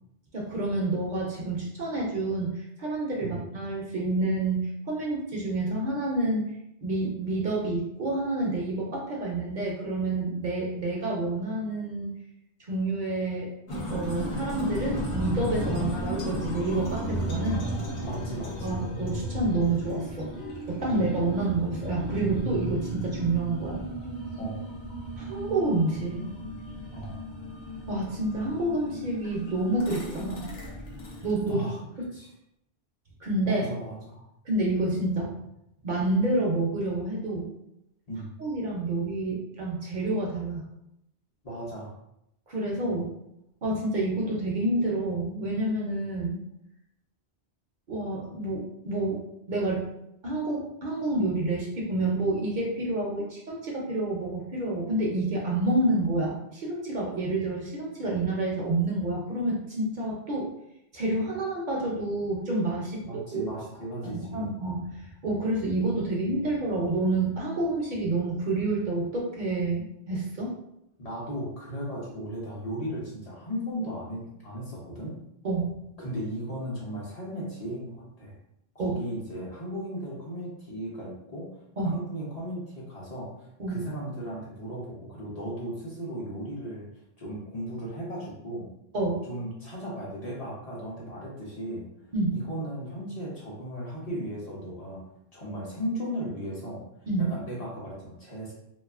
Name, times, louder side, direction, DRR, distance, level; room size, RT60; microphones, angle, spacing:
voice 1, 0.3-6.5 6.8-12.2 12.7-13.5 13.9-17.6 18.6-20.3 20.7-23.8 25.2-26.4 27.9-30.5 31.2-31.7 33.2-33.7 34.5-35.3 35.8-37.5 38.4-40.7 42.5-43.1 43.6-46.4 47.9-49.9 50.2-60.5 60.9-63.0 63.3-63.5 64.1-70.5 75.4-75.8 78.8-79.0 81.8-81.9 83.6-83.8 88.9-89.3 92.1-92.4 97.1-97.3, right 2 dB, 55° right, -2 dB, 0.6 m, -28 dB
sound 1, 13.7-31.5, right 1 dB, 75° left, 0.9 m, -34 dB
voice 2, 18.0-18.8 20.9-21.1 24.4-24.6 26.9-27.2 31.5-31.8 32.1-32.3 33.5-34.3 38.1-38.3 41.4-41.9 63.0-64.5 71.0-75.2 76.0-78.3 78.7-86.9 87.2-88.7 89.3-91.9 92.3-95.0 95.3-96.8 97.2-98.5, equal, 45° left, -5 dB, 0.7 m, -36 dB
2.5 x 2.3 x 2.4 m, 0.80 s
omnidirectional pair, 1.0 m